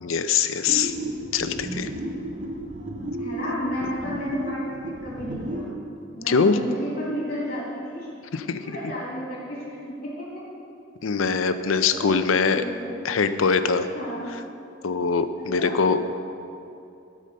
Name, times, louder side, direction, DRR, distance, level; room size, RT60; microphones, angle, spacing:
voice 1, 0.0-0.9 1.3-1.9 6.3-6.6 8.3-8.8 11.0-12.6 13.0-13.9 14.8-16.0, left 5 dB, 80° left, 10 dB, 0.5 m, -22 dB
sound 1, 0.7-5.7, right 1 dB, 35° right, 0.8 m, -33 dB
voice 2, 3.2-5.7 6.1-8.1 8.6-10.4 11.8-13.0 13.9-14.3 15.4-15.8, equal, 45° left, -7 dB, 2.7 m, -32 dB
12.5 x 5.0 x 6.6 m, 2.7 s
head